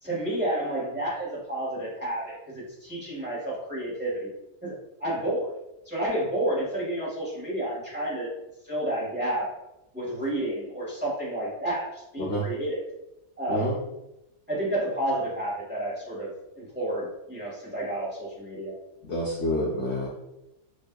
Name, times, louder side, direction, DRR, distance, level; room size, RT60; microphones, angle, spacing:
voice 1, 0.0-4.3 4.6-4.7 5.0-5.5 5.8-8.3 8.6-9.5 9.9-12.8 13.4-13.7 14.5-16.3 16.6-18.7, right 1 dB, 5° right, -7 dB, 1.2 m, -30 dB
voice 2, 12.2-12.5 13.5-13.8 19.0-20.1, equal, 55° left, -4 dB, 0.8 m, -28 dB
6.1 x 2.6 x 2.3 m, 0.92 s
omnidirectional pair, 1.7 m